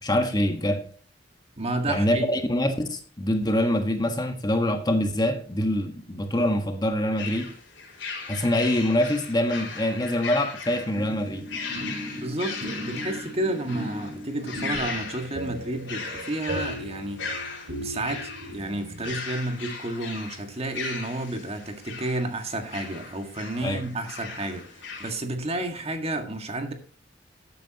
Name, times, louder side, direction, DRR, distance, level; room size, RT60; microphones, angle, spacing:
voice 1, 0.0-0.8 1.9-7.5 8.3-11.4 23.6-23.8, left 1 dB, 20° left, 1.4 m, -25 dB
voice 2, 1.6-2.4 12.2-17.3 17.8-26.7, right 1 dB, 35° right, 1.8 m, -31 dB
sound 1, 7.2-25.1, left 4 dB, 70° left, 4.1 m, -38 dB
sound 2, 10.9-19.2, equal, 75° right, 4.2 m, -37 dB
13.5 x 9.2 x 2.9 m
head